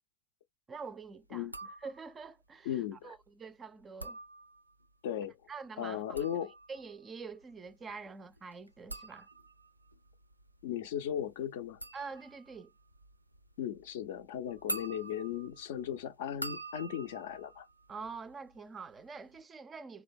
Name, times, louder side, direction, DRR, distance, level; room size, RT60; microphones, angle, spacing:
voice 1, 0.7-1.5 1.8-4.2 5.5-6.3 6.7-9.3 11.9-12.7 17.9-20.0, right 5 dB, 20° right, 0.4 m, -46 dB
sound 1, 1.4-2.3 3.8-4.9 5.9-18.6 18.9-19.4, right 2 dB, 85° right, 0.4 m, -46 dB
voice 2, 2.7-3.1 5.0-5.4 5.8-6.5 10.6-11.8 13.6-17.7, left 10 dB, 55° left, 0.5 m, -37 dB
3.2 x 2.2 x 3.9 m
figure-of-eight pair, 90°, 0 cm